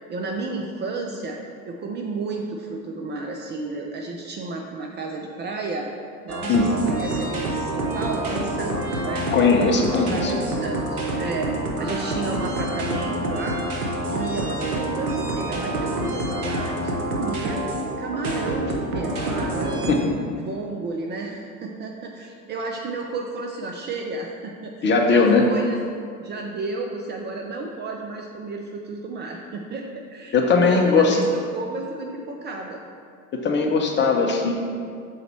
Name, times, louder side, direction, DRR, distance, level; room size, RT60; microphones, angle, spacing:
voice 1, 0.1-1.4 1.7-5.9 6.2-9.3 10.1-13.6 14.1-17.6 18.0-19.9 20.4-25.8 26.2-32.8, right 3 dB, 25° right, 1 dB, 0.5 m, -32 dB
sound 1, 6.3-20.0, right 1 dB, 80° right, 1.0 m, -27 dB
voice 2, 9.3-10.3 19.9-20.1 24.8-25.4 30.3-31.2 33.3-34.5, left 4 dB, 25° left, 2 dB, 0.7 m, -19 dB
6.4 x 4.0 x 4.4 m, 2.2 s
figure-of-eight pair, 75°, 43 cm